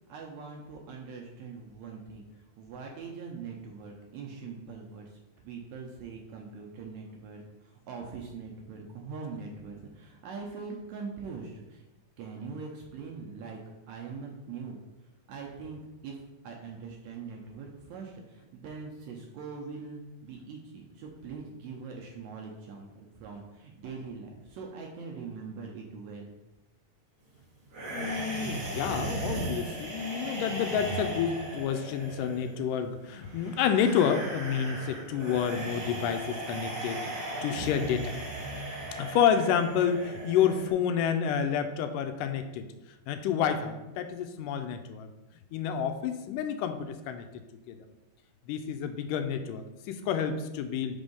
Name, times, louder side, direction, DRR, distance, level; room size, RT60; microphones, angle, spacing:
voice 1, 0.1-2.3 2.6-5.0 5.4-11.8 12.2-13.6 13.9-14.8 15.3-16.2 16.4-26.3, right 5 dB, 75° right, 0 dB, 1.8 m, -42 dB
sound 1, 27.7-40.7, right 1 dB, 55° right, 1.1 m, -37 dB
voice 2, 27.9-38.1 39.0-42.7 43.1-45.1 45.5-47.2 47.7-47.8 48.5-51.0, left 8 dB, 85° left, 8 dB, 2.2 m, -29 dB
5.2 x 3.5 x 5.3 m, 1.0 s
omnidirectional pair, 3.8 m